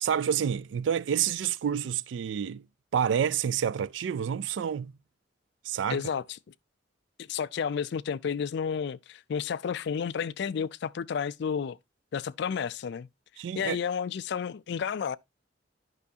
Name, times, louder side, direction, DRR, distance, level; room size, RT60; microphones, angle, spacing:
voice 1, 0.0-2.6 2.9-4.9 5.7-6.0 13.4-13.8, right 8 dB, 75° right, 0.3 m, -28 dB
voice 2, 5.9-6.4 7.2-11.8 12.1-13.1 13.6-15.2, left 7 dB, 65° left, 0.4 m, -31 dB
10.5 x 5.6 x 2.7 m
head